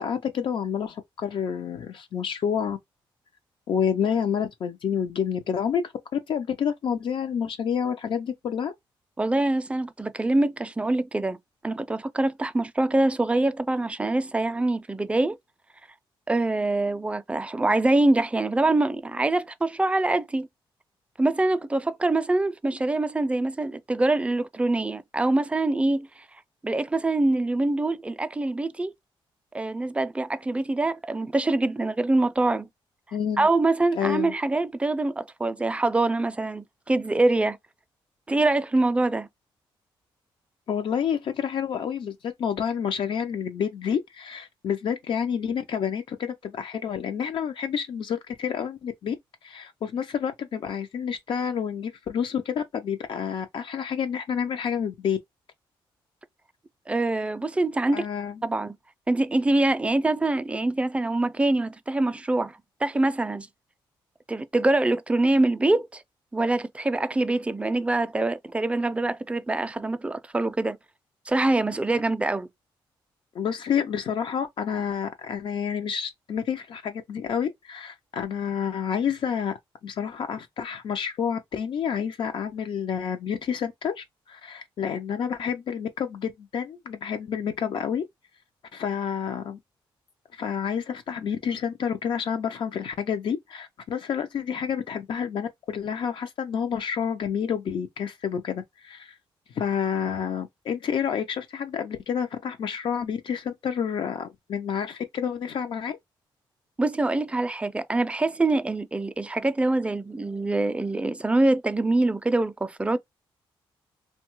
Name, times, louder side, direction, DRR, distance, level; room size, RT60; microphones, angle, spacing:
voice 1, 0.0-2.8 3.7-8.7 33.1-33.5 33.9-34.3 40.7-49.2 49.4-55.2 57.9-58.4 73.3-79.5 79.8-88.0 88.7-89.6 90.3-99.2 99.5-106.0, left 7 dB, 65° left, 0.4 m, -29 dB
voice 2, 9.2-11.4 11.6-15.4 16.3-20.5 21.2-26.1 26.6-28.9 29.5-32.7 33.4-37.6 38.3-39.3 56.9-58.1 58.4-58.8 59.1-63.5 64.3-66.0 66.3-70.8 71.3-72.5 106.8-113.0, right 2 dB, 15° right, 0.3 m, -24 dB
2.6 x 2.2 x 2.9 m
cardioid pair, 80°, 9 cm